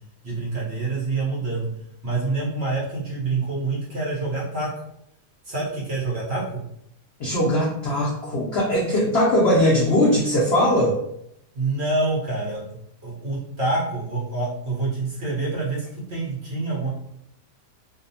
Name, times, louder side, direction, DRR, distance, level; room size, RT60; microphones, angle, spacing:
voice 1, 0.2-1.6 2.0-4.7 5.4-6.4 11.5-12.6 13.0-16.9, right 3 dB, 50° right, -6 dB, 0.9 m, -26 dB
voice 2, 7.2-11.0, left 1 dB, 80° left, -5 dB, 0.5 m, -20 dB
2.7 x 2.0 x 2.7 m, 0.75 s
omnidirectional pair, 1.7 m